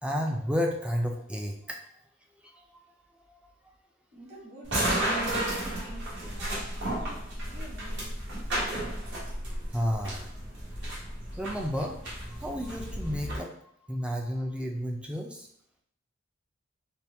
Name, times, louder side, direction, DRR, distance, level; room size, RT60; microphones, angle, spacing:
voice 1, 0.0-1.8 2.4-2.8 3.2-3.4 9.7-10.3 11.4-12.0 12.3-15.5, equal, 5° right, 1 dB, 0.4 m, -32 dB
voice 2, 4.1-5.2 5.5-8.2, right 1 dB, 35° right, -3 dB, 1.2 m, -49 dB
sound 1, 4.6-13.4, right 1 dB, 60° right, 1.4 m, -33 dB
4.3 x 2.3 x 3.4 m, 0.68 s
head